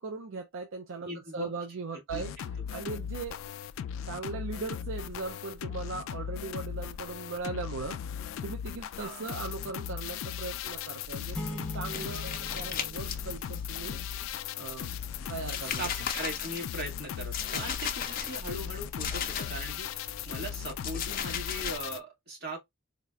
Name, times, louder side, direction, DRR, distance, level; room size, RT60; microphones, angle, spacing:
voice 1, 0.0-2.3 2.7-3.5 4.1-8.0 8.4-11.4 11.7-14.0 14.5-14.9 15.3-15.8 17.5-17.6, right 4 dB, 75° right, 0.5 m, -39 dB
voice 2, 1.0-1.5 2.1-2.2 9.0-9.3 15.8-22.6, right 1 dB, 55° right, 1.8 m, -39 dB
sound 1, 2.1-22.0, left 9 dB, 85° left, 0.3 m, -38 dB
sound 2, 11.0-14.3 14.7-19.7 20.1-21.8, left 7 dB, 45° left, 0.6 m, -38 dB
sound 3, 11.3-14.1, equal, 5° left, 1.1 m, -42 dB
4.0 x 2.8 x 2.2 m
head